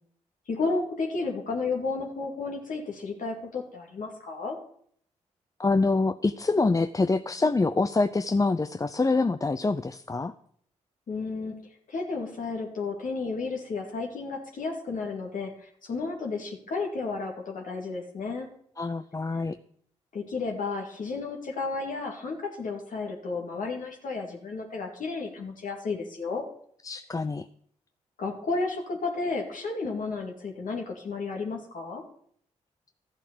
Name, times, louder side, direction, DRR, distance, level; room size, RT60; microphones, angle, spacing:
voice 1, 0.5-4.6 11.1-11.6 11.9-18.5 20.1-26.4 28.2-32.0, left 3 dB, 65° left, 0 dB, 2.3 m, -32 dB
voice 2, 5.6-10.3 18.8-19.6 26.8-27.5, left 3 dB, 25° left, 11 dB, 0.6 m, -25 dB
13.0 x 7.3 x 6.9 m, 0.62 s
supercardioid pair, 40°, 15 cm